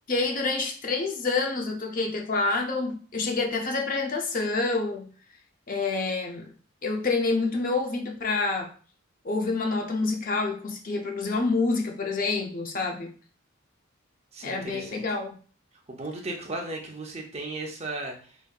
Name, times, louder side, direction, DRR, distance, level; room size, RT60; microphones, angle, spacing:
voice 1, 0.1-5.1 5.7-6.5 6.8-8.7 9.2-13.1 14.4-15.3, left 3 dB, 40° left, 2 dB, 0.5 m, -27 dB
voice 2, 14.3-15.2 15.9-18.4, right 2 dB, 30° right, 0 dB, 0.6 m, -36 dB
4.7 x 2.6 x 2.3 m, 0.41 s
head